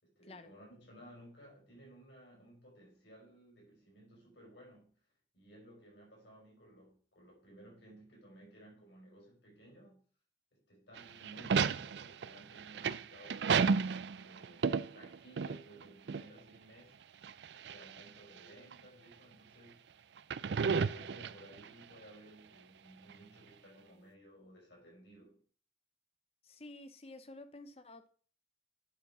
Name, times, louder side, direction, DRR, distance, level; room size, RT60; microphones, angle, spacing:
voice 1, 0.0-4.9 5.3-10.0 10.5-13.8 14.1-17.0 17.5-19.9 20.2-25.4, right 1 dB, 80° left, 5.2 m, -57 dB
sound 1, 11.0-15.8 16.1-16.2 17.2-18.0 18.7-18.8 20.2-21.7, right 5 dB, 70° right, 0.4 m, -32 dB
voice 2, 26.4-28.1, left 2 dB, 35° left, 0.8 m, -51 dB
10.0 x 4.4 x 6.1 m
head